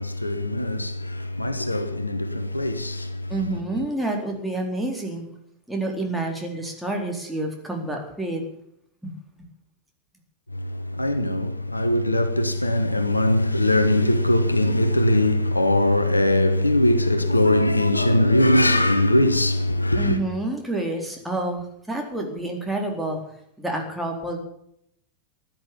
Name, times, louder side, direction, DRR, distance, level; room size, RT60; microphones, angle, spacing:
voice 1, 0.0-3.3 10.5-20.2, left 1 dB, 85° left, 1.3 m, -21 dB
voice 2, 3.3-5.2 5.7-8.4 9.0-9.1 19.9-23.2 23.6-24.4, right 2 dB, 5° right, 4.0 m, -28 dB
15.5 x 11.0 x 7.0 m
figure-of-eight pair, 90°, 0 cm